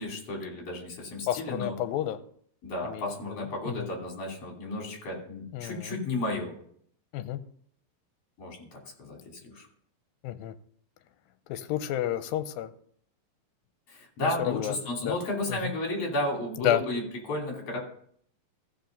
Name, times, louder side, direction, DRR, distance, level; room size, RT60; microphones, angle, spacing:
voice 1, 0.0-1.8 2.6-6.5 8.4-9.7 13.9-17.8, left 2 dB, 45° left, 0 dB, 3.7 m, -33 dB
voice 2, 1.3-2.2 2.8-3.9 5.5-6.0 7.1-7.4 10.2-10.5 11.5-12.7 14.2-14.8 15.0-15.2 15.5-15.6 16.6-16.8, left 12 dB, 85° left, 10 dB, 2.4 m, -31 dB
14.5 x 5.3 x 5.2 m, 0.62 s
omnidirectional pair, 4.1 m